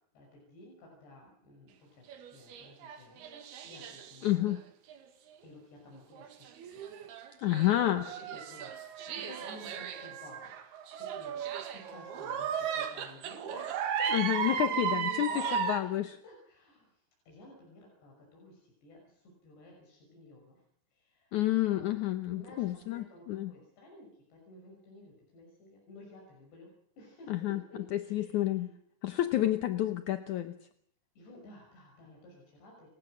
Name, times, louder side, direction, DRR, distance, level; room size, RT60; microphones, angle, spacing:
voice 1, 0.1-4.5 5.4-7.1 7.6-20.6 20.9-21.9 22.3-26.7 27.0-28.7 29.2-29.7 31.2-32.9, left 1 dB, 90° left, -1 dB, 8.1 m, -53 dB
sound 1, 2.1-4.5 4.9-5.0 6.1-15.8, right 7 dB, 70° right, 3.9 m, -36 dB
voice 2, 4.2-4.6 7.4-8.1 14.1-15.3 15.7-16.1 21.3-23.5 27.3-27.6 27.9-28.7 29.0-30.6, left 14 dB, 70° left, 9 dB, 1.9 m, -29 dB
29.0 x 16.5 x 6.3 m, 0.69 s
omnidirectional pair, 4.8 m